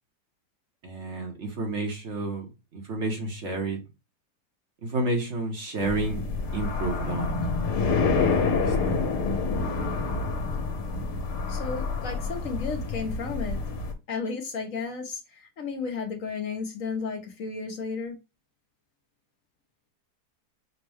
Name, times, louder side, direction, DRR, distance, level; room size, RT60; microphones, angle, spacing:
voice 1, 0.8-3.8 4.8-6.2 6.5-7.4 8.1-9.1, right 2 dB, 50° right, 1.0 m, -31 dB
sound 1, 5.8-13.9, left 4 dB, 80° left, 1.4 m, -27 dB
voice 2, 11.5-13.6 14.1-18.2, left 5 dB, 60° left, 1.1 m, -33 dB
5.2 x 2.1 x 3.3 m
omnidirectional pair, 1.7 m